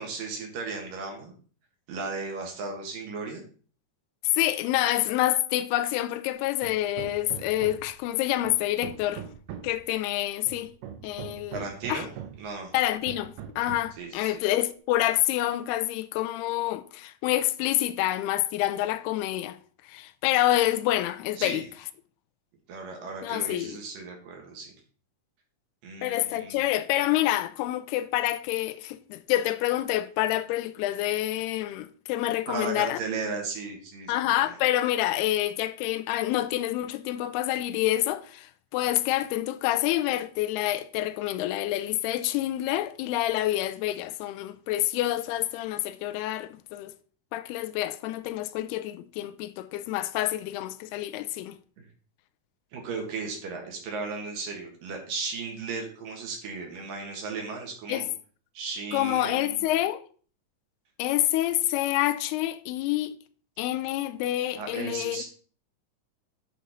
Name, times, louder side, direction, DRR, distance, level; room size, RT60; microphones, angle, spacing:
voice 1, 0.0-1.3 1.9-3.4 11.5-12.1 12.4-12.7 14.0-14.4 21.4-21.6 22.7-24.7 25.8-26.6 32.5-34.5 51.8-51.9 52.7-58.1 58.5-59.6 64.5-65.2, right 4 dB, 65° right, 3.0 m, -35 dB
voice 2, 4.2-9.2 9.6-10.7 11.0-12.1 12.7-19.6 19.8-21.6 23.2-23.8 26.0-33.0 34.1-46.9 47.3-51.6 57.9-58.1 58.9-60.0 61.0-63.2 63.6-65.2, left 14 dB, 90° left, 2.6 m, -27 dB
Hammer, 6.6-8.0 8.4-9.8 10.5-12.5 13.1-14.0, right 9 dB, 85° right, 2.9 m, -41 dB
8.9 x 4.0 x 5.0 m
omnidirectional pair, 4.5 m